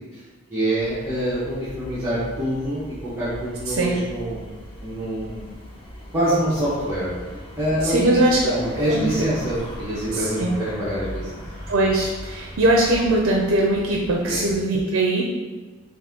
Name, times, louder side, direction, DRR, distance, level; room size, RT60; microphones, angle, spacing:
voice 1, 0.5-4.5 4.8-5.5 6.1-7.1 7.6-11.4 14.3-14.5, right 1 dB, 10° right, -12 dB, 0.8 m, -26 dB
sound 1, 0.8-14.6, equal, 25° left, 0.7 m, -39 dB
voice 2, 3.7-4.0 7.8-8.4 8.8-9.1 10.1-10.6 11.7-15.2, right 1 dB, 65° right, -1 dB, 0.5 m, -21 dB
4.0 x 2.6 x 3.6 m, 1.3 s
head